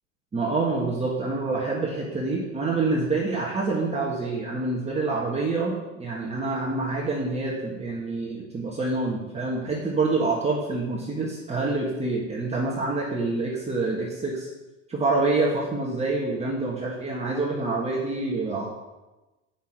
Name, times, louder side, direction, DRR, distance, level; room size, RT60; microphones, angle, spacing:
voice 1, 0.3-14.5 14.9-18.7, right 3 dB, 15° right, -4 dB, 1.6 m, -27 dB
7.3 x 6.0 x 6.0 m, 1.1 s
hypercardioid pair, 100°, 38 cm